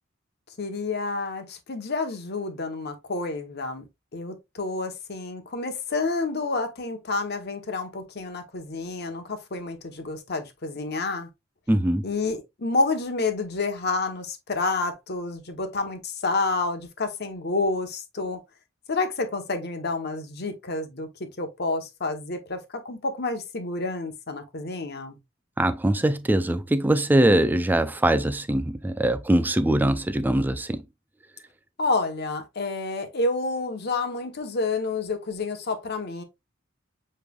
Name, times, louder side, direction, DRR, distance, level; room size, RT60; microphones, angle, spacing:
voice 1, 0.6-3.8 4.1-11.3 12.0-18.4 18.9-21.1 21.4-25.2 31.8-36.2, left 3 dB, 55° left, 0.9 m, -29 dB
voice 2, 11.7-12.0 25.6-30.8, right 1 dB, 10° right, 0.4 m, -22 dB
7.1 x 3.2 x 2.3 m
head